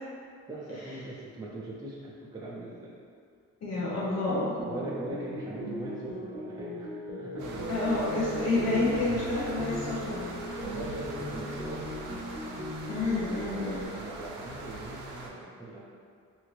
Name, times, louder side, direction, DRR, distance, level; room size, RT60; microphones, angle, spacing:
voice 1, 0.5-3.0 3.7-4.2 4.6-8.1 10.6-12.0 13.3-15.8, right 2 dB, 15° right, -6 dB, 0.4 m, -41 dB
voice 2, 3.6-4.5 7.7-10.2 10.5-10.6 12.9-13.9, left 2 dB, 60° left, -8 dB, 0.8 m, -29 dB
sound 1, 4.2-13.9, left 1 dB, 40° right, 0.8 m, -38 dB
sound 2, 7.4-15.3, right 2 dB, 80° right, 0.5 m, -42 dB
2.7 x 2.5 x 3.1 m, 2.2 s
cardioid pair, 90°, 30 cm